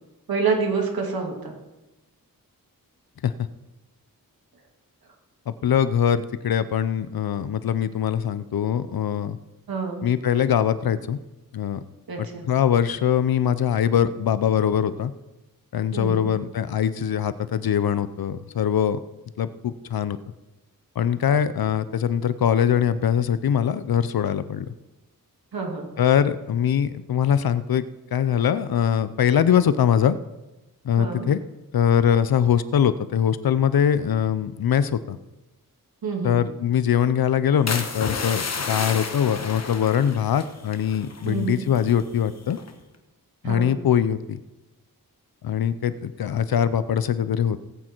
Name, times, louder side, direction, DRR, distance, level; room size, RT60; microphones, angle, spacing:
voice 1, 0.3-1.5 9.7-10.0 12.1-12.4 15.9-16.3 25.5-25.9 31.0-31.3 36.0-36.4 41.2-41.6 43.4-43.7, right 5 dB, 75° right, 1 dB, 2.5 m, -27 dB
voice 2, 5.5-9.4 10.0-11.2 11.5-11.8 12.2-15.1 15.7-19.0 19.4-20.2 21.0-24.7 26.0-27.8 28.1-30.2 30.8-31.4 31.7-35.2 36.2-42.6 43.4-44.2 45.4-47.6, left 9 dB, 75° left, 14 dB, 0.6 m, -22 dB
sound 1, 37.7-41.4 41.7-42.0 42.5-42.8, left 4 dB, 45° left, 1.2 m, -31 dB
18.0 x 8.7 x 4.5 m, 1.0 s
wide cardioid pair, 150°, 36 cm